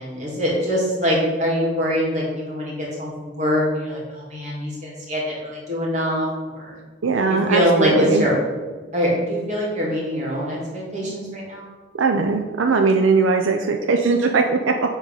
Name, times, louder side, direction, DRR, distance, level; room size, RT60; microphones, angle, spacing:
voice 1, 0.0-6.8 7.3-8.3 8.9-11.7, equal, 35° right, -4 dB, 2.3 m, -23 dB
voice 2, 7.0-8.3 12.0-14.7, right 4 dB, 80° right, 4 dB, 0.5 m, -19 dB
7.3 x 3.8 x 5.5 m, 1.4 s
head